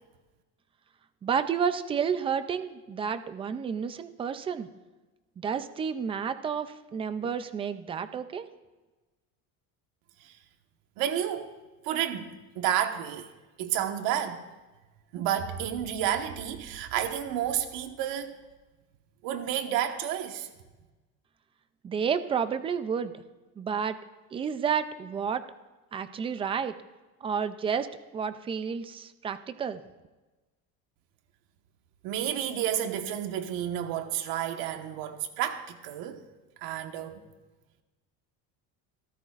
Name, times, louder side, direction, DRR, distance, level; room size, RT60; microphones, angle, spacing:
voice 1, 1.2-4.7 5.4-8.5 21.8-23.1 23.6-24.0 24.3-25.4 25.9-26.7 27.2-27.9 28.1-29.8, right 7 dB, 15° right, 0.3 m, -30 dB
voice 2, 11.0-11.5 11.8-12.3 12.5-13.3 13.6-14.4 15.1-18.3 19.2-20.5 32.0-36.2 36.6-37.2, right 10 dB, 70° right, 1.4 m, -30 dB
26.5 x 13.5 x 2.5 m
cardioid pair, 175°, 35 cm